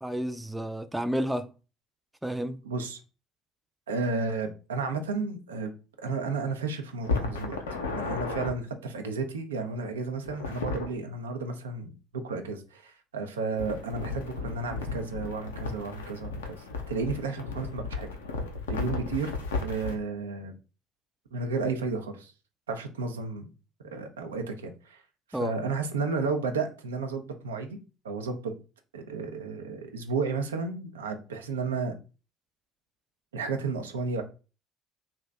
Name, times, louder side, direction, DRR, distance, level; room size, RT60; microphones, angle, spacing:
voice 1, 0.0-1.5 2.2-2.6 25.3-25.6, equal, 5° right, 0.4 m, -31 dB
voice 2, 2.6-3.0 3.9-5.7 6.0-7.6 7.9-18.1 18.7-19.3 19.6-20.6 21.3-22.3 22.7-23.4 23.8-25.0 25.4-27.8 28.0-28.5 28.9-31.9 33.3-34.2, right 4 dB, 85° right, 0.5 m, -32 dB
sound 1, 7.0-8.5 10.2-10.9 13.6-20.0, left 4 dB, 80° left, 0.5 m, -34 dB
2.6 x 2.2 x 3.3 m
hypercardioid pair, 55°, 0 cm